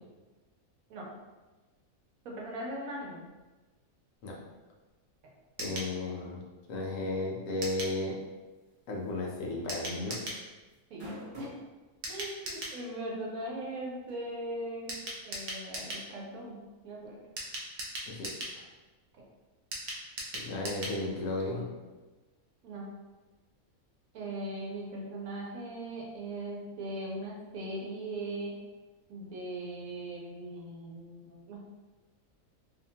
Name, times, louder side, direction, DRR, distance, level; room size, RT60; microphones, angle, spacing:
voice 1, 2.2-3.3 10.9-11.0 11.4-11.5 12.1-17.2 22.6-22.9 24.1-28.5 29.1-31.6, right 1 dB, 80° right, -3 dB, 1.1 m, -39 dB
voice 2, 5.6-6.4 6.7-8.1 8.9-10.2 18.1-18.3 18.6-18.7 20.3-21.7, left 2 dB, 70° left, -2 dB, 0.9 m, -34 dB
sound 1, 5.6-5.9 7.6-8.0 9.7-10.4 12.0-12.8 14.9-16.1 17.4-18.6 19.7-21.0 21.3-21.4 21.6-21.7, right 1 dB, 60° right, 0.4 m, -38 dB
sound 2, 9.0-9.3 9.6-9.7 10.7-11.7 12.4-12.5 14.1-14.2, equal, 35° right, 1.1 m, -43 dB
2.8 x 2.2 x 2.8 m, 1.2 s
omnidirectional pair, 1.5 m